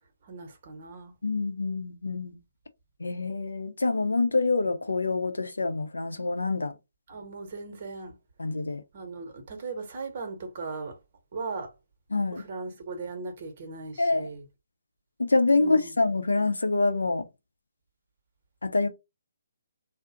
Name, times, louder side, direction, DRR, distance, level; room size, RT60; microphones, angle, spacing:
voice 1, 0.2-1.1 7.1-8.2 8.9-11.0 11.3-11.7 12.3-14.4 15.5-16.0, right 3 dB, 45° right, 0.9 m, -38 dB
voice 2, 1.2-2.4 3.0-6.7 8.4-8.8 12.1-12.4 14.0-14.3 15.2-17.3 18.6-18.9, left 3 dB, 80° left, 0.6 m, -26 dB
2.5 x 2.0 x 2.6 m
figure-of-eight pair, 140°, 0 cm